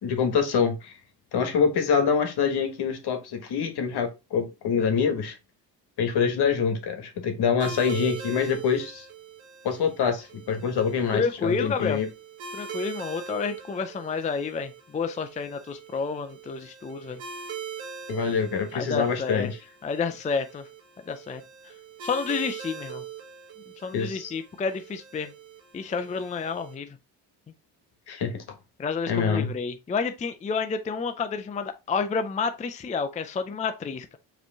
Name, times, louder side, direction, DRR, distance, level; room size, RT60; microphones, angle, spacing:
voice 1, 0.0-0.9 1.3-5.3 6.0-9.0 9.6-12.1 18.1-19.6 23.9-24.3 28.1-28.4 29.1-29.5, left 6 dB, 60° left, 1.4 m, -25 dB
sound 1, 7.6-26.7, right 6 dB, 90° right, 1.2 m, -42 dB
voice 2, 11.1-12.0 12.5-17.2 18.7-19.5 19.8-20.6 21.1-21.7 22.0-23.0 23.8-25.3 25.7-27.0 28.8-34.2, left 5 dB, 20° left, 0.4 m, -30 dB
4.9 x 3.2 x 3.4 m
cardioid pair, 90°, 44 cm